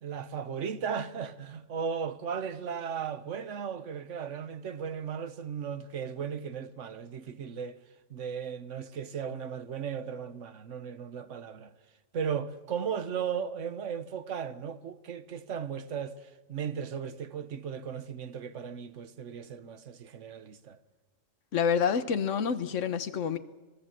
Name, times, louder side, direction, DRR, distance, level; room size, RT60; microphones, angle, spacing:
voice 1, 0.0-7.8 8.1-11.7 12.1-20.8, right 7 dB, 70° right, 1.4 m, -36 dB
voice 2, 21.5-23.4, left 7 dB, 75° left, 1.4 m, -28 dB
26.5 x 19.5 x 7.6 m
omnidirectional pair, 1.3 m